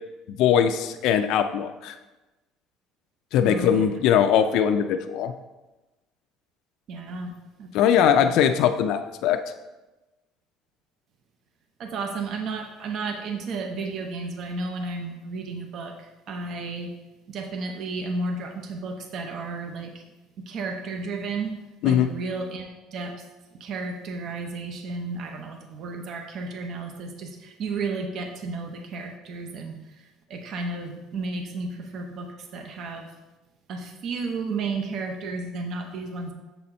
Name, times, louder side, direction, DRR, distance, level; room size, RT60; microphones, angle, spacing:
voice 1, 0.4-2.0 3.3-5.3 7.7-9.4 21.8-22.1, left 9 dB, 65° left, 7 dB, 0.3 m, -21 dB
voice 2, 3.5-3.8 6.9-7.7 8.1-8.4 11.8-16.9 17.3-20.0 20.4-21.5 21.8-23.2 23.6-33.1 33.7-36.3, right 3 dB, 45° right, 4 dB, 0.6 m, -33 dB
6.8 x 4.2 x 4.2 m, 1.1 s
cardioid pair, 155°, 0 cm